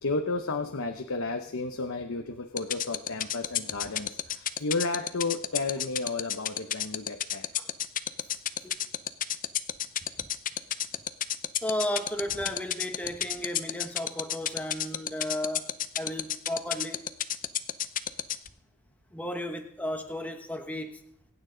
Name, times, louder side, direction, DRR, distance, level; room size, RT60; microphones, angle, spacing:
voice 1, 0.0-7.5, left 3 dB, 65° left, 5 dB, 0.9 m, -32 dB
sound 1, 2.6-18.5, left 11 dB, 40° left, 0.6 m, -29 dB
voice 2, 11.6-15.7 16.0-17.0 19.1-21.0, left 1 dB, 5° left, 5 dB, 1.2 m, -34 dB
26.5 x 9.0 x 3.9 m, 0.70 s
head